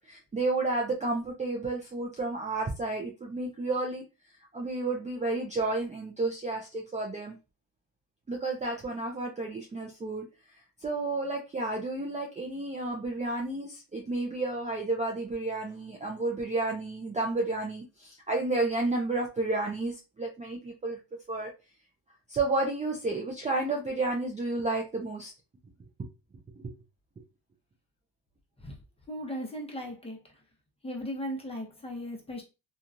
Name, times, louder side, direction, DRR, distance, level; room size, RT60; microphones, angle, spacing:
voice 1, 0.1-4.0 4.5-7.4 8.3-10.2 10.8-21.0 21.3-21.5 22.3-25.3 26.0-26.1 26.6-26.7, right 2 dB, 15° right, 0.5 m, -31 dB
voice 2, 29.1-30.2 30.8-32.4, equal, 15° left, 0.9 m, -37 dB
2.9 x 2.4 x 2.5 m
cardioid pair, 105°, 44 cm